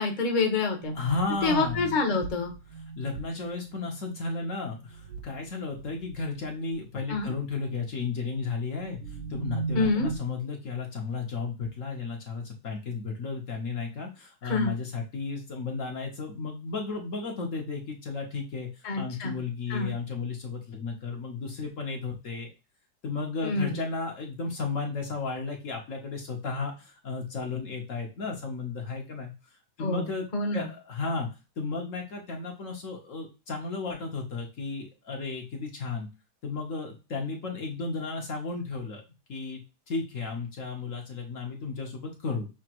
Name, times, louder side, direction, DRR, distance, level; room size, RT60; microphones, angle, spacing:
voice 1, 0.0-0.9 1.4-2.5 7.1-7.3 9.7-10.1 14.4-14.8 18.8-19.4 19.7-19.9 23.4-23.8 29.8-30.1 30.3-30.7, left 3 dB, 35° left, 2 dB, 1.0 m, -27 dB
sound 1, 0.8-4.3 4.8-5.5 5.8-6.7 7.1-7.4 8.8-10.2, right 4 dB, 75° right, 1.3 m, -38 dB
voice 2, 0.9-1.9 3.0-9.0 9.3-22.5 23.0-29.3 29.8-31.3 31.6-36.1 36.4-39.0 39.3-39.6 39.9-42.5, left 4 dB, 55° left, 1 dB, 1.2 m, -34 dB
6.1 x 2.8 x 2.9 m, 0.29 s
omnidirectional pair, 1.7 m